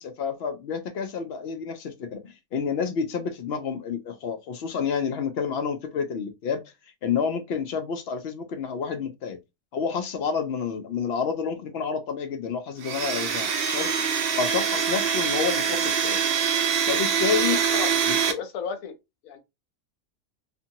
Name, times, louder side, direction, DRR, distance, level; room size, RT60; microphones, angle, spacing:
voice 1, 0.0-6.6 7.0-9.4 9.7-13.9 14.3-16.2 16.9-17.6 18.1-18.4, left 6 dB, 60° left, 0.7 m, -29 dB
Domestic sounds home sounds, 12.8-18.3, right 7 dB, 60° right, 0.6 m, -24 dB
voice 2, 17.5-17.9 18.3-18.9 19.2-19.4, left 7 dB, 80° left, 1.1 m, -34 dB
2.6 x 2.6 x 2.7 m
omnidirectional pair, 1.4 m